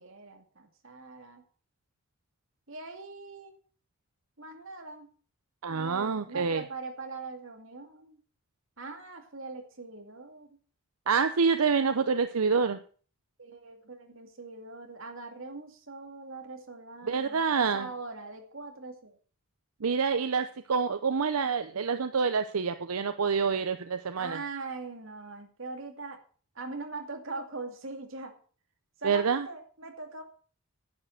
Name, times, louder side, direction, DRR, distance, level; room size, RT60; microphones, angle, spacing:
voice 1, 0.0-1.4 2.7-3.6 4.4-5.1 5.7-8.2 8.8-10.5 13.4-19.2 24.2-26.2 26.5-28.3 29.0-30.2, right 3 dB, 65° right, 4 dB, 2.3 m, -42 dB
voice 2, 5.6-6.6 11.1-12.8 17.1-17.9 19.8-24.4 29.0-29.5, right 5 dB, 85° right, 10 dB, 0.7 m, -27 dB
10.5 x 7.7 x 6.5 m, 0.42 s
head